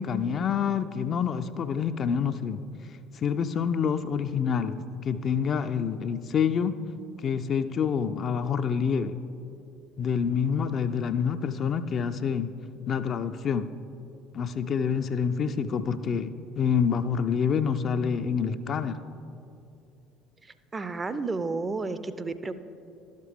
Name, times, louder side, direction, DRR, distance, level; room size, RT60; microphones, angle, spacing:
voice 1, 0.0-2.6 3.1-6.8 7.2-9.2 10.0-12.5 12.9-13.7 14.3-19.0, left 7 dB, 45° left, 10 dB, 0.3 m, -27 dB
voice 2, 20.7-22.5, right 3 dB, 25° right, 12 dB, 0.4 m, -31 dB
12.0 x 6.6 x 3.4 m, 2.7 s
figure-of-eight pair, 60°, 0 cm